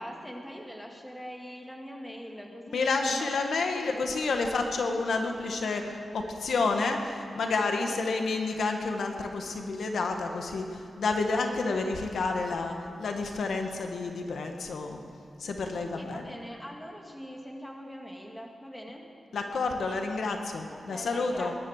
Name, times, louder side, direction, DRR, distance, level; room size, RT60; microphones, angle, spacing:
voice 1, 0.0-3.3 3.7-3.9 7.9-8.0 15.9-19.0 20.7-21.5, equal, 5° left, 1 dB, 1.9 m, -42 dB
voice 2, 2.7-15.0 15.4-16.3 19.3-21.6, left 3 dB, 85° left, 4 dB, 1.5 m, -30 dB
20.0 x 11.0 x 6.5 m, 2.7 s
wide cardioid pair, 145°, 0 cm